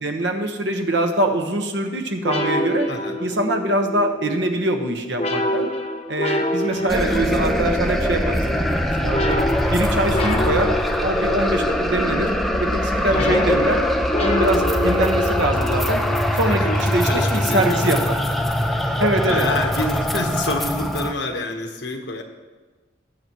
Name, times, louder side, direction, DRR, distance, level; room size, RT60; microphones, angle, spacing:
voice 1, 0.0-2.9 3.2-5.7 6.1-8.4 8.9-9.4 9.7-10.7 11.0-12.3 12.6-13.8 14.2-16.0 16.3-18.1 19.0-19.5, right 1 dB, 90° right, 4 dB, 1.3 m, -23 dB
sound 1, 2.2-18.5, left 1 dB, 35° left, 0.9 m, -28 dB
voice 2, 2.9-3.2 6.6-7.5 13.1-13.4 16.5-18.0 18.8-19.0 19.3-22.2, left 2 dB, 75° left, 4 dB, 1.2 m, -28 dB
sound 2, 6.9-21.1, equal, ahead, 0.6 m, -22 dB
19.0 x 7.9 x 3.1 m, 1.3 s
head